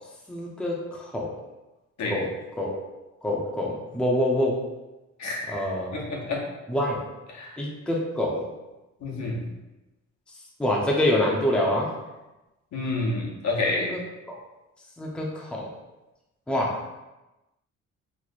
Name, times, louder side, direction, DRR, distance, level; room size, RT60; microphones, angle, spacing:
voice 1, 0.3-1.3 2.1-2.3 2.6-2.8 3.2-4.6 5.5-6.0 6.7-7.0 7.6-8.5 10.6-11.9 13.9-14.0 14.3-14.4 15.0-15.7 16.5-16.8, left 1 dB, 5° left, -2 dB, 0.6 m, -26 dB
voice 2, 5.9-6.4 7.3-7.5 9.0-9.4 12.7-13.9, left 2 dB, 65° left, -2 dB, 0.9 m, -28 dB
3.1 x 2.1 x 4.0 m, 1.0 s
cardioid pair, 90°, 30 cm